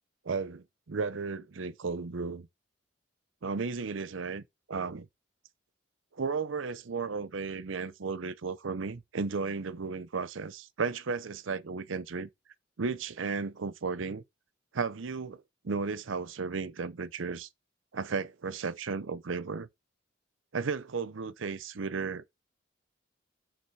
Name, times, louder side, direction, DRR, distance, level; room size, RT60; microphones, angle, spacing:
voice 1, 0.2-2.5 3.4-4.4 4.7-5.1 6.1-12.3 12.8-14.2 14.7-17.5 17.9-19.7 20.5-22.2, right 4 dB, 75° right, 0.6 m, -34 dB
7.7 x 7.0 x 4.7 m
head